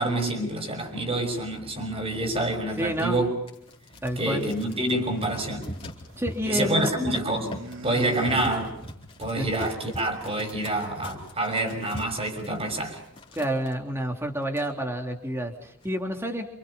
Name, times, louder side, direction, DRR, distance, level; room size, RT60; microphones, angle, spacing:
voice 1, 0.0-3.3 4.2-5.7 6.4-7.5 7.8-8.8 9.2-13.0, right 1 dB, 25° right, 6.3 m, -27 dB
voice 2, 2.8-3.2 4.0-4.4 6.2-6.9 9.4-9.5 13.3-16.5, equal, 10° right, 3.3 m, -29 dB
sound 1, 3.5-13.8 14.2-14.3 14.5-15.2 15.6-15.9, equal, 25° left, 4.1 m, -42 dB
sound 2, 3.9-6.3 6.6-9.2, right 2 dB, 60° right, 3.4 m, -43 dB
28.5 x 28.5 x 5.7 m
head